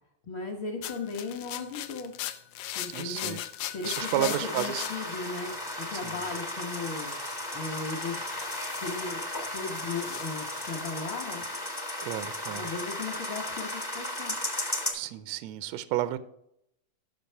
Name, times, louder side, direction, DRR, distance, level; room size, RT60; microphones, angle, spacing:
voice 1, 0.3-2.1 2.7-3.4 3.7-7.1 7.5-9.2 9.5-11.5 12.5-14.4, left 4 dB, 55° left, -1 dB, 1.4 m, -37 dB
sound 1, 0.8-6.0 6.7-9.2 9.5-10.8, left 12 dB, 75° left, 1.7 m, -40 dB
voice 2, 2.9-3.4 3.8-4.8 6.0-6.2 12.0-12.7 14.9-16.2, right 13 dB, 80° right, 14 dB, 1.5 m, -32 dB
sound 2, 3.9-14.9, left 1 dB, 20° left, 0.6 m, -35 dB
12.0 x 6.1 x 4.5 m, 0.77 s
omnidirectional pair, 3.6 m